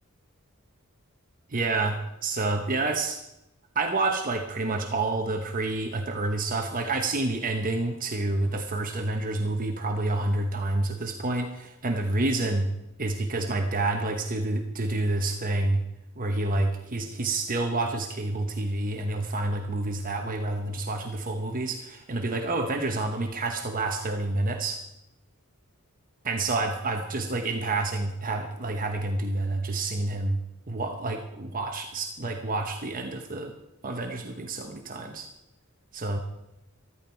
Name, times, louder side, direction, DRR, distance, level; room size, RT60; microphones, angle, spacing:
voice 1, 1.5-3.2 3.7-12.7 13.0-15.8 16.2-24.8 26.2-30.4 30.7-33.5 33.8-35.3 35.9-36.2, right 2 dB, 40° right, 4 dB, 1.0 m, -28 dB
14.5 x 13.0 x 4.5 m, 0.89 s
head